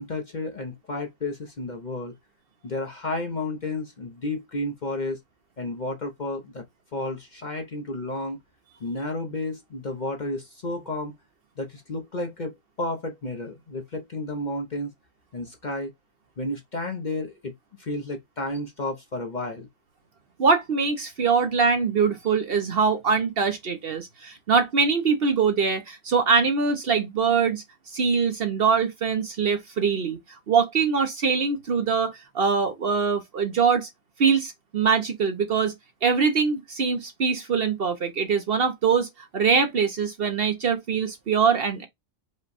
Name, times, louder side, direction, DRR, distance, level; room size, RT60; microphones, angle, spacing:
voice 1, 0.0-2.1 2.6-5.2 5.6-6.6 6.9-8.4 8.8-11.1 11.6-14.9 15.3-15.9 16.4-17.5 17.8-19.7, left 2 dB, 40° left, 0.8 m, -32 dB
voice 2, 20.4-27.6 27.9-30.2 30.5-33.9 34.2-35.7 36.0-39.1 39.3-41.9, right 5 dB, 55° right, 0.8 m, -23 dB
5.2 x 2.2 x 4.1 m
omnidirectional pair, 1.4 m